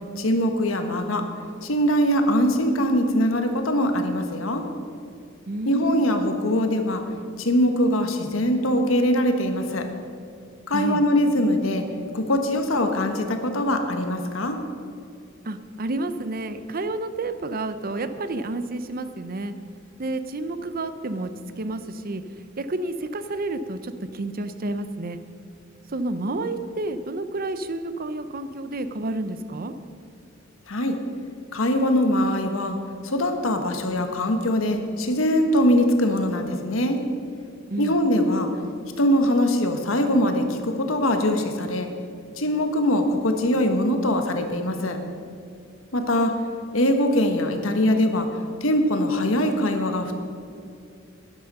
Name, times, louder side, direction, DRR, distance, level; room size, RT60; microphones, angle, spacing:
voice 1, 0.2-1.3 1.6-4.6 5.6-7.0 7.4-9.9 10.7-11.8 12.1-14.6 30.7-31.0 31.5-32.8 33.0-37.0 37.8-38.5 39.0-41.9 42.4-45.0 45.9-46.4 46.7-48.3 48.6-50.1, equal, 90° left, 5 dB, 1.3 m, -22 dB
voice 2, 5.5-6.2 10.7-11.0 15.4-19.5 20.0-22.2 22.6-25.2 25.9-29.7 37.7-38.0, right 2 dB, 50° right, 11 dB, 0.7 m, -30 dB
11.5 x 11.0 x 5.5 m, 2.4 s
head